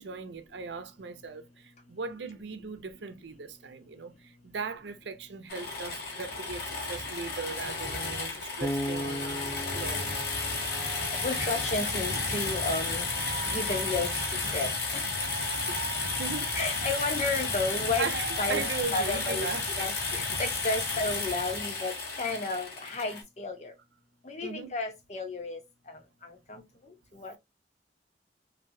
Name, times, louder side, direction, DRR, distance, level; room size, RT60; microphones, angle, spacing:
voice 1, 0.0-9.5 9.7-10.3 15.7-15.8 16.2-16.5 18.0-19.9 24.4-24.7, right 4 dB, 90° right, 0.6 m, -38 dB
sound 1, 5.5-23.2, left 3 dB, 60° left, 1.3 m, -32 dB
Bass guitar, 8.6-11.6, equal, 15° left, 0.4 m, -37 dB
sound 2, 10.6-17.4 17.6-18.8, right 4 dB, 45° right, 0.5 m, -43 dB
voice 2, 11.1-13.1 13.5-14.1 14.5-15.1 16.5-18.1 18.4-18.6 18.9-19.5 19.8-23.7 24.2-25.6 25.9-27.4, left 3 dB, 40° left, 0.8 m, -32 dB
3.2 x 2.7 x 2.7 m
head